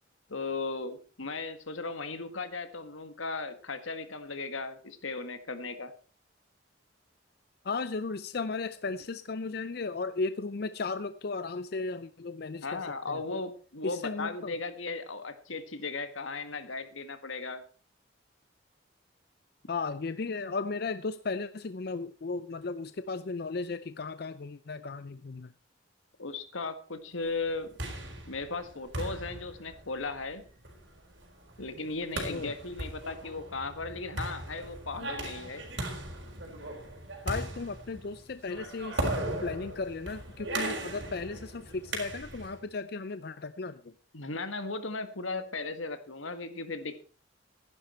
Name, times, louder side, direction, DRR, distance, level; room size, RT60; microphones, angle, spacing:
voice 1, 0.3-5.9 12.6-17.6 26.2-27.7 28.3-30.4 31.6-35.6 44.1-47.0, left 3 dB, 80° left, 9 dB, 1.8 m, -36 dB
voice 2, 7.6-13.4 13.8-14.5 19.7-25.5 32.3-32.5 37.2-43.9, left 4 dB, 50° left, 13 dB, 0.5 m, -35 dB
sound 1, 27.4-42.6, right 1 dB, 65° right, 4.4 m, -38 dB
15.0 x 11.0 x 4.4 m, 0.38 s
head